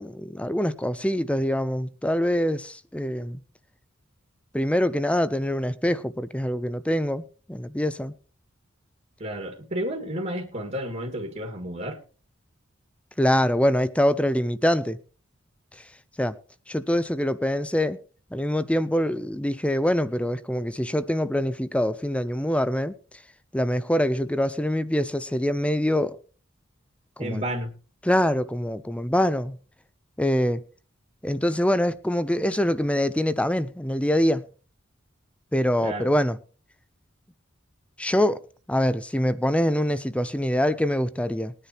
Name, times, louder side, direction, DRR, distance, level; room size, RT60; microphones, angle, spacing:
voice 1, 0.0-3.4 4.5-8.1 13.2-15.0 16.2-16.4 16.7-18.0 18.3-22.9 23.5-26.2 27.2-27.4 28.0-29.6 30.2-30.6 31.2-34.4 35.5-36.4 38.0-38.4 38.7-41.5, equal, 5° left, 0.6 m, -24 dB
voice 2, 9.2-12.0 27.2-27.7 35.8-36.2, right 1 dB, 40° right, 1.8 m, -31 dB
20.5 x 10.0 x 2.9 m
head